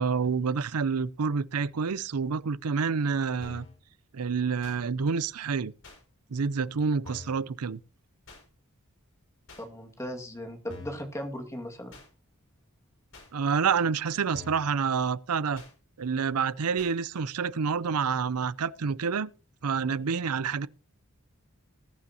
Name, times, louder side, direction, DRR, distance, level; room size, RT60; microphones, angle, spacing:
voice 1, 0.0-3.7 4.1-5.7 6.3-7.8 13.3-15.6 16.0-19.3 19.6-20.7, right 5 dB, 80° right, 0.6 m, -28 dB
sound 1, 3.4-3.8 4.6-4.8 5.8-6.0 7.0-7.4 8.3-8.4 9.5-9.7 10.7-11.1 11.9-12.1 13.1-13.3 14.3-14.7 15.6-15.7 16.8-16.9, left 3 dB, 60° left, 5.7 m, -46 dB
voice 2, 9.6-11.9, equal, 15° left, 2.0 m, -37 dB
20.0 x 9.5 x 2.9 m
head